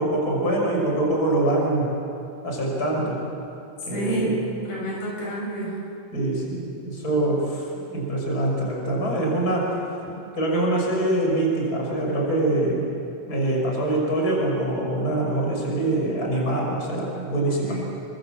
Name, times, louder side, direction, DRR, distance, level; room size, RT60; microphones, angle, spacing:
voice 1, 0.0-1.9 2.4-3.2 3.9-4.3 6.1-9.8 10.4-12.8 13.3-17.8, right 1 dB, 25° left, -1 dB, 6.2 m, -24 dB
voice 2, 3.9-5.8 10.0-10.2 17.6-17.8, right 1 dB, 80° left, -3 dB, 8.4 m, -29 dB
30.0 x 24.5 x 7.7 m, 2.7 s
omnidirectional pair, 4.1 m